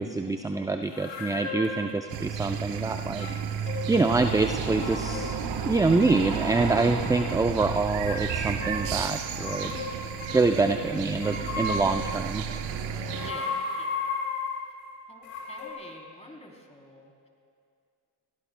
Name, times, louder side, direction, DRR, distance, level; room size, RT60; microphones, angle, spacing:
voice 1, 0.0-3.3 3.9-5.3 5.6-9.7 10.3-12.5, right 3 dB, 10° right, 7 dB, 0.4 m, -25 dB
sound 1, 0.9-1.9 3.1-4.1 4.4-5.4 5.6-6.3 7.0-7.5 8.0-10.8 11.2-12.1 12.9-14.7 15.2-15.7, left 3 dB, 85° left, 3.3 m, -35 dB
sound 2, 2.1-13.3, right 8 dB, 70° right, 1.0 m, -34 dB
sound 3, 4.1-9.1, right 6 dB, 50° right, 1.3 m, -34 dB
voice 2, 13.2-14.1 15.1-17.3, left 1 dB, 15° left, 0 dB, 3.3 m, -47 dB
25.5 x 18.0 x 2.2 m, 2.4 s
hypercardioid pair, 60°, 47 cm